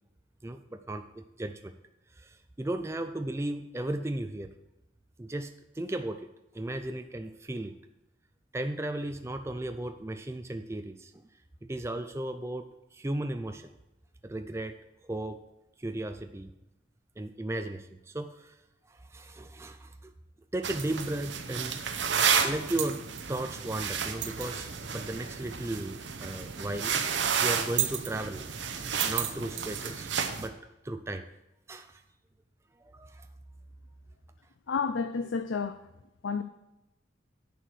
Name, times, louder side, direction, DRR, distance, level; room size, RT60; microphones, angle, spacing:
voice 1, 0.4-1.7 2.2-4.5 5.2-7.8 8.5-11.2 11.6-13.7 14.2-14.7 15.0-15.4 15.8-16.5 17.2-18.5 18.9-20.1 20.5-21.8 22.4-23.0 23.3-28.5 29.0-30.6 30.8-31.3 31.7-32.0 32.8-33.3, right 1 dB, 15° right, 7 dB, 0.4 m, -35 dB
sound 1, 20.6-30.5, right 7 dB, 70° right, 0.9 m, -31 dB
voice 2, 34.7-35.8 36.2-36.4, left 5 dB, 80° left, 10 dB, 0.5 m, -30 dB
10.0 x 4.7 x 7.7 m, 0.91 s
head